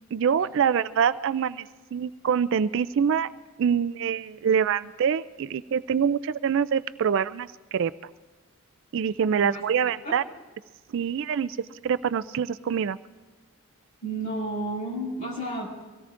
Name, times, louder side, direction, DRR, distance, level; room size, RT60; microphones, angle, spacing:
voice 1, 0.1-3.3 3.6-7.9 8.9-10.2 10.9-11.6 11.8-13.0, right 7 dB, 60° right, 14 dB, 0.3 m, -25 dB
voice 2, 14.0-15.7, right 1 dB, 35° left, -3 dB, 5.7 m, -31 dB
24.5 x 17.0 x 2.5 m, 1.3 s
head